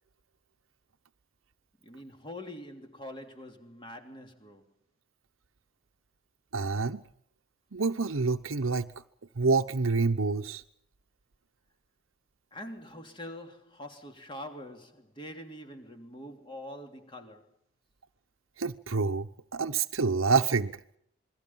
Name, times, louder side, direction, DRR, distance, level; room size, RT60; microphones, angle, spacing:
voice 1, 1.8-4.7 12.5-17.5, left 1 dB, 25° left, 3.2 m, -44 dB
voice 2, 6.5-7.0 7.7-8.9 9.4-10.6 18.6-20.7, right 4 dB, 75° right, 0.9 m, -27 dB
27.5 x 22.5 x 5.7 m
head